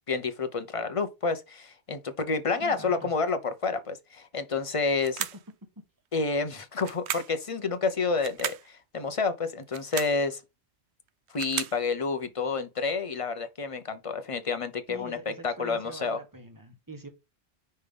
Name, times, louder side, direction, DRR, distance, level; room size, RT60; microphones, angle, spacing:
voice 1, 0.1-5.2 6.1-10.4 11.3-16.2, left 4 dB, 35° left, 0.7 m, -29 dB
voice 2, 2.6-3.1 14.9-17.1, right 2 dB, 20° right, 1.3 m, -43 dB
sound 1, 5.0-5.5 6.8-7.4 8.2-8.7 9.6-10.2 11.1-11.8, right 11 dB, 85° right, 0.9 m, -35 dB
5.4 x 3.4 x 5.1 m
omnidirectional pair, 1.1 m